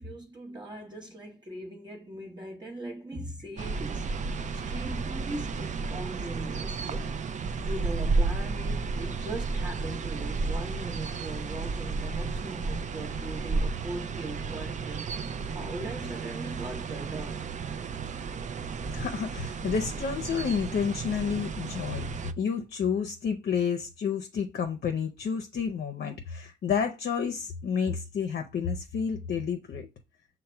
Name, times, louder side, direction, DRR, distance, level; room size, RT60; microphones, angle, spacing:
voice 1, 0.0-7.2 7.6-15.1 15.5-17.4, right 1 dB, 25° right, 0.9 m, -40 dB
sound 1, 3.6-22.3, right 4 dB, 40° right, 0.4 m, -32 dB
voice 2, 18.9-22.1 22.4-29.9, left 6 dB, 60° left, 0.6 m, -30 dB
5.7 x 2.2 x 4.3 m
cardioid pair, 80°, 18 cm